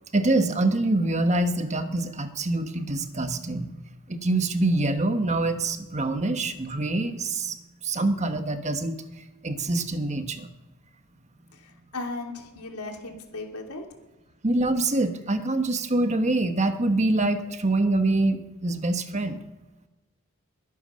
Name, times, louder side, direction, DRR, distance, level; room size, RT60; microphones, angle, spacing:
voice 1, 0.1-3.8 4.1-7.6 7.8-9.0 9.4-10.5 14.4-19.4, right 2 dB, 30° right, 8 dB, 1.2 m, -25 dB
voice 2, 11.5-13.9, left 2 dB, 85° left, 3 dB, 2.9 m, -36 dB
21.5 x 9.6 x 6.4 m, 1.1 s
head